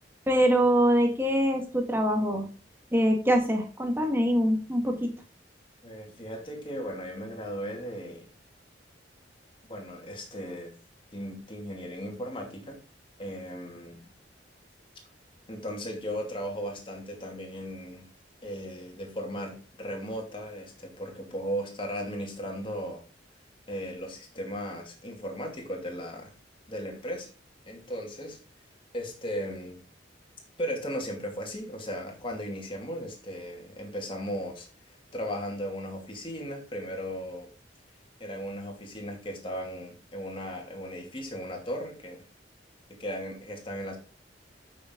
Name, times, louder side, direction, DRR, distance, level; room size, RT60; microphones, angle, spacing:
voice 1, 0.3-2.5 2.9-5.1, equal, 10° right, 3 dB, 1.8 m, -24 dB
voice 2, 5.8-8.2 9.7-10.7 11.1-12.8 13.2-14.0 15.5-18.0 18.4-23.0 23.7-26.3 26.7-27.3 27.6-28.4 28.9-29.8 30.6-34.7 35.1-37.5 38.2-42.2 42.9-44.0, equal, 30° left, 1 dB, 2.5 m, -36 dB
8.7 x 6.5 x 3.8 m, 0.34 s
head